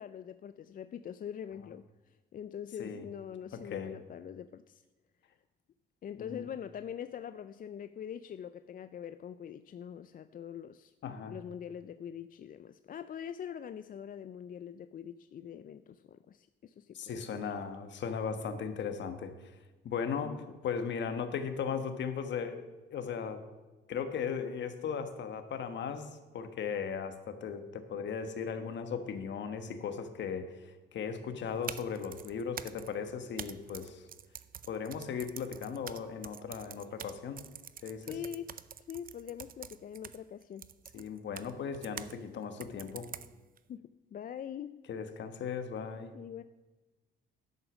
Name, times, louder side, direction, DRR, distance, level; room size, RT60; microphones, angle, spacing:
voice 1, 0.0-4.8 6.0-10.9 11.3-17.2 20.2-20.4 38.0-38.5 38.9-40.7 43.7-44.7 46.1-46.4, left 9 dB, 45° left, 0.4 m, -43 dB
voice 2, 3.5-4.0 6.2-6.4 11.0-11.4 16.9-19.3 19.8-20.3 20.6-22.6 22.9-23.4 23.9-26.1 26.3-30.5 30.9-34.0 34.7-37.4 37.8-38.2 40.9-43.1 44.9-46.1, left 6 dB, 65° left, 1.3 m, -37 dB
sound 1, 31.5-42.2 42.6-43.6, right 9 dB, 45° right, 0.6 m, -46 dB
11.0 x 8.1 x 6.2 m
cardioid pair, 90°, 20 cm